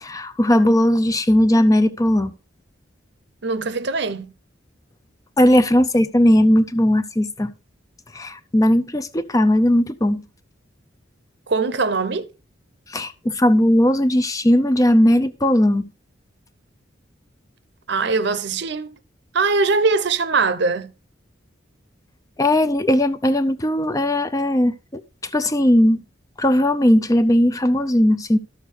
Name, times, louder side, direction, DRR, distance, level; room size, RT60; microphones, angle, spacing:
voice 1, 0.0-2.3 5.4-7.5 8.1-10.2 12.9-15.9 22.4-26.0 26.4-28.4, left 1 dB, 15° left, 0.5 m, -18 dB
voice 2, 3.4-4.3 11.5-12.3 17.9-19.0 19.3-20.9, right 4 dB, 60° right, 0.7 m, -21 dB
12.5 x 6.5 x 3.3 m
head